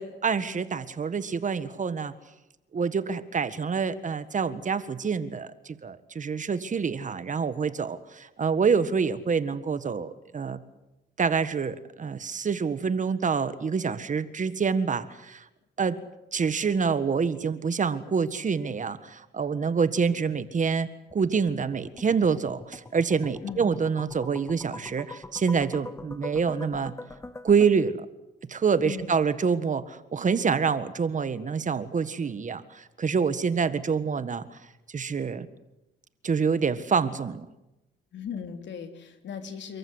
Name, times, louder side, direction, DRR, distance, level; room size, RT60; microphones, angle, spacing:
voice 1, 0.0-2.1 2.7-10.6 11.2-15.4 15.8-16.0 16.3-26.9 27.4-28.0 28.5-34.6 34.9-35.5 36.2-37.5, right 5 dB, 40° right, 13 dB, 1.6 m, -27 dB
sound 1, 21.1-27.7, left 2 dB, 15° left, 1.2 m, -43 dB
voice 2, 28.8-29.3 38.1-39.8, left 6 dB, 65° left, 6 dB, 3.6 m, -37 dB
29.5 x 14.5 x 9.8 m, 0.96 s
cardioid pair, 90°, 20 cm